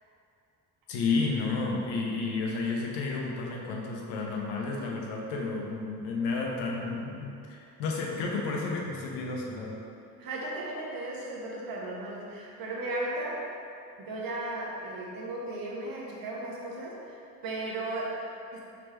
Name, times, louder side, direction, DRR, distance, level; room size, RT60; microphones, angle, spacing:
voice 1, 0.9-9.8, left 3 dB, 90° left, -1 dB, 0.6 m, -31 dB
voice 2, 10.2-13.5 14.0-18.6, right 2 dB, 60° right, -4 dB, 0.9 m, -36 dB
3.4 x 2.9 x 3.2 m, 2.6 s
supercardioid pair, 55°, 40 cm